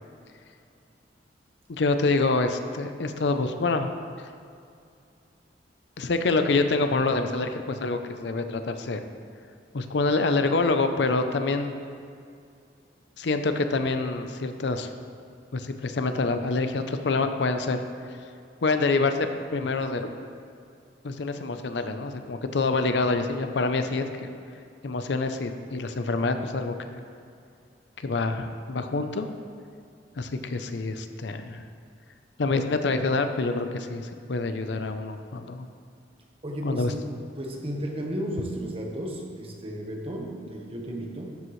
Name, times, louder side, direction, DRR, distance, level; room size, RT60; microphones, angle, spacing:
voice 1, 1.7-3.9 6.0-9.0 9.7-11.7 13.2-14.9 15.5-17.8 18.6-19.3 19.5-20.1 21.0-24.3 24.8-27.0 28.0-29.3 30.2-31.6 32.4-35.7 36.6-36.9, left 3 dB, 70° left, 8 dB, 0.6 m, -26 dB
voice 2, 36.4-41.4, equal, 30° right, 0 dB, 1.1 m, -34 dB
12.0 x 7.7 x 3.2 m, 2.4 s
head